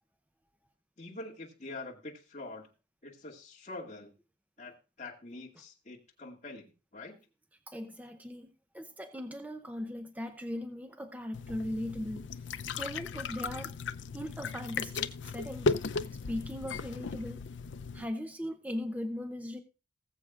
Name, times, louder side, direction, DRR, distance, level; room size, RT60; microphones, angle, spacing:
voice 1, 1.0-2.7 3.0-4.1 4.6-7.2, left 2 dB, 40° left, 2.2 m, -45 dB
voice 2, 7.7-12.3 12.8-13.7 14.1-16.0 16.3-17.4 17.9-19.6, left 1 dB, 10° right, 0.7 m, -39 dB
sound 1, 11.3-18.0, left 4 dB, 75° left, 0.5 m, -36 dB
19.5 x 7.5 x 2.4 m
head